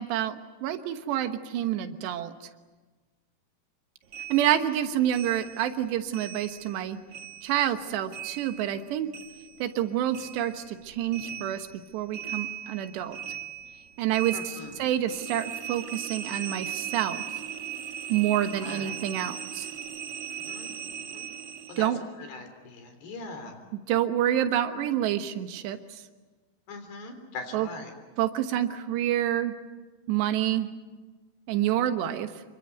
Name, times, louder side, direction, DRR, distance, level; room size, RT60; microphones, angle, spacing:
voice 1, 0.0-2.3 4.3-7.0 7.4-9.1 9.6-11.7 11.9-13.2 14.0-14.5 14.8-17.2 18.1-19.7 21.8-22.0 23.9-25.8 27.5-27.7 28.2-29.5 30.1-30.7 31.5-32.3, right 11 dB, 85° right, 8 dB, 3.5 m, -28 dB
sound 1, 4.1-6.8 7.1-9.9 10.1-21.9, right 9 dB, 60° right, 1.6 m, -39 dB
voice 2, 14.3-14.9 18.6-19.1 20.3-20.7 21.1-21.2 21.7-21.9 22.2-23.6 26.7-27.9, left 3 dB, 70° left, 6 dB, 5.5 m, -41 dB
27.5 x 23.5 x 8.0 m, 1.3 s
omnidirectional pair, 4.8 m